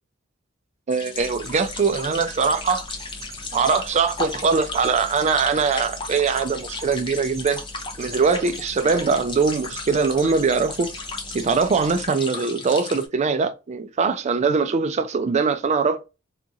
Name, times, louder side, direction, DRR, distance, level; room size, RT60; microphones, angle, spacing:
sound 1, 0.9-13.1, left 3 dB, 25° left, 0.6 m, -35 dB
voice 1, 0.9-2.8 3.5-7.6 8.0-10.9 11.3-16.0, right 5 dB, 35° right, 0.4 m, -22 dB
sound 2, 1.2-12.1, right 1 dB, 15° right, 0.7 m, -42 dB
2.8 x 2.3 x 2.6 m
head